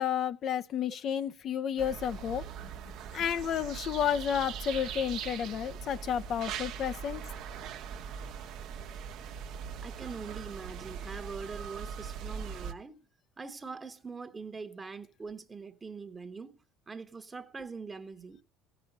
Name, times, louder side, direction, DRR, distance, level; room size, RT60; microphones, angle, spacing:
voice 1, 0.0-2.4 3.1-7.2, left 9 dB, 50° left, 0.6 m, -31 dB
sound 1, 1.8-12.7, right 7 dB, 65° right, 1.1 m, -41 dB
voice 2, 9.8-13.1 13.4-18.4, right 4 dB, 20° right, 1.1 m, -43 dB
15.5 x 6.2 x 6.6 m
supercardioid pair, 105°, 0 cm